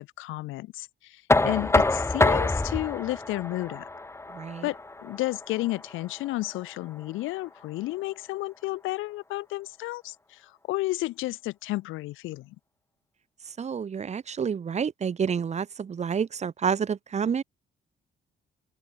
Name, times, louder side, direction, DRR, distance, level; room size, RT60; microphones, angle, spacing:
voice 1, 0.0-3.9 4.6-12.6, left 18 dB, 90° left, 0.6 m, -32 dB
Knock, 1.3-7.1, left 2 dB, 15° left, 1.0 m, -27 dB
voice 2, 4.3-4.7 13.5-17.4, right 7 dB, 35° right, 0.7 m, -29 dB
open air
cardioid pair, 90°, 20 cm